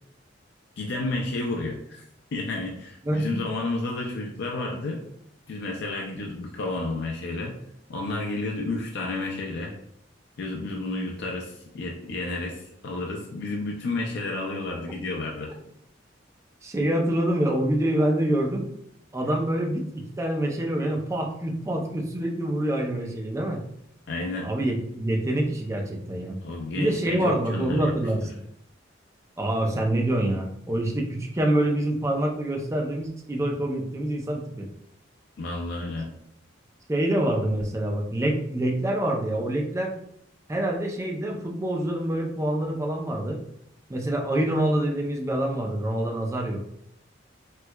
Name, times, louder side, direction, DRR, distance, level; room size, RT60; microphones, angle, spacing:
voice 1, 0.8-2.0 2.3-5.0 5.5-7.6 7.9-9.7 10.4-15.5 24.1-24.5 26.4-27.9 35.4-36.1, left 2 dB, 60° left, 0 dB, 0.4 m, -31 dB
voice 2, 16.6-18.6 19.1-23.6 24.4-26.4 26.8-28.4 29.4-34.7 36.9-39.9 40.5-43.4 43.9-46.6, right 1 dB, 15° right, 1 dB, 0.4 m, -26 dB
4.3 x 2.2 x 2.2 m, 0.73 s
head